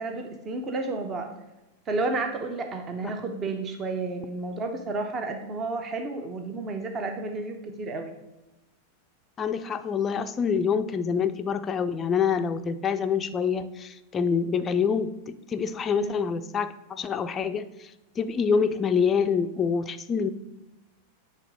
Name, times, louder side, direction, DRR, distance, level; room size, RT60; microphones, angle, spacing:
voice 1, 0.0-1.3 1.9-8.1 15.9-16.2, right 3 dB, 25° right, 5 dB, 0.7 m, -31 dB
voice 2, 9.4-17.9 18.2-20.3, left 6 dB, 25° left, 9 dB, 0.4 m, -26 dB
7.4 x 3.4 x 5.2 m, 0.97 s
figure-of-eight pair, 90°, 0 cm